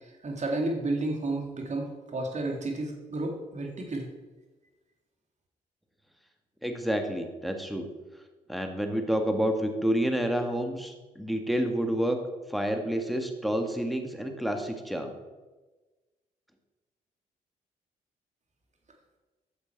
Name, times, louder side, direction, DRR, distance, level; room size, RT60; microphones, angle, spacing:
voice 1, 0.2-4.1, right 2 dB, 45° right, 2 dB, 2.2 m, -31 dB
voice 2, 6.6-7.9 8.5-12.2 12.5-15.1, equal, ahead, 4 dB, 1.6 m, -29 dB
9.7 x 6.8 x 4.5 m, 1.2 s
supercardioid pair, 55°, 17 cm